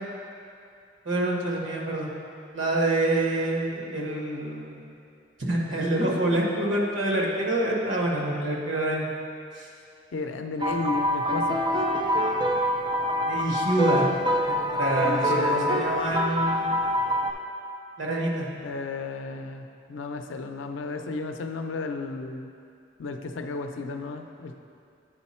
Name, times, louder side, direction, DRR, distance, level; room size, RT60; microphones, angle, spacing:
voice 1, 1.0-2.1 2.5-4.8 5.4-9.1 9.6-9.7 13.3-14.1 14.5-16.8 18.0-18.5, right 1 dB, 90° right, -2 dB, 1.2 m, -26 dB
voice 2, 10.1-11.6 15.0-15.8 18.6-22.5 23.0-24.6, left 3 dB, 90° left, 6 dB, 0.5 m, -33 dB
sound 1, 10.6-17.3, equal, 25° right, 0.4 m, -25 dB
8.9 x 4.2 x 4.3 m, 2.4 s
head